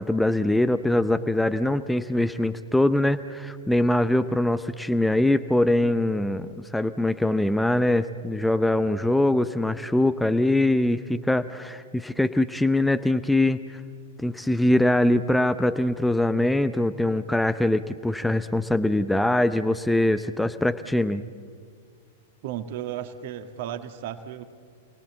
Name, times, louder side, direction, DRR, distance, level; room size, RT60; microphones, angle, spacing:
voice 1, 0.0-13.8 14.2-21.2, left 1 dB, 5° left, 11 dB, 0.7 m, -23 dB
voice 2, 22.4-24.4, right 10 dB, 50° right, 8 dB, 1.7 m, -34 dB
29.0 x 19.5 x 7.2 m, 2.1 s
figure-of-eight pair, 100°, 0 cm